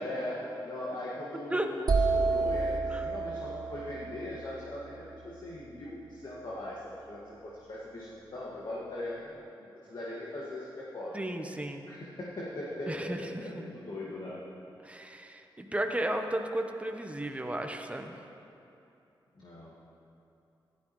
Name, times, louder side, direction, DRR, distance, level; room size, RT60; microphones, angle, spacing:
voice 1, 0.0-11.1 11.9-14.4 19.4-19.7, left 1 dB, 60° left, -6 dB, 2.0 m, -40 dB
sound 1, 1.9-5.7, right 4 dB, 50° right, 0.8 m, -31 dB
voice 2, 11.1-11.8 12.9-13.6 14.8-18.2, right 1 dB, 15° right, 4 dB, 1.0 m, -34 dB
15.0 x 12.5 x 3.2 m, 2.8 s
cardioid pair, 70°, 9 cm